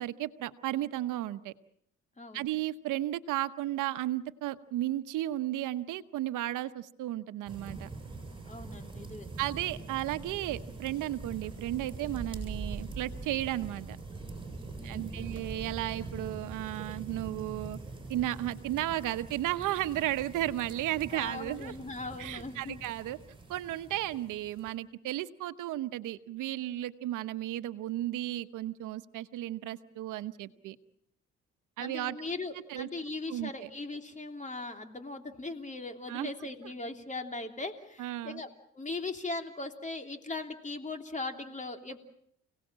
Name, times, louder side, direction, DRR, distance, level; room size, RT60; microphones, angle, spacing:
voice 1, 0.0-1.5 2.3-7.9 9.4-14.0 14.8-17.8 18.1-21.7 22.2-23.2 23.5-30.8 31.8-32.2 32.7-32.9 33.3-33.7 36.1-36.3 38.0-38.4, right 14 dB, 90° right, 12 dB, 1.0 m, -34 dB
voice 2, 2.2-2.5 8.5-9.3 14.8-15.3 21.1-22.8 31.8-38.5 38.7-42.0, left 3 dB, 25° left, 6 dB, 3.1 m, -39 dB
sound 1, 7.5-24.7, right 3 dB, 15° right, 7.8 m, -43 dB
30.0 x 18.0 x 7.5 m, 0.70 s
cardioid pair, 90°, 30 cm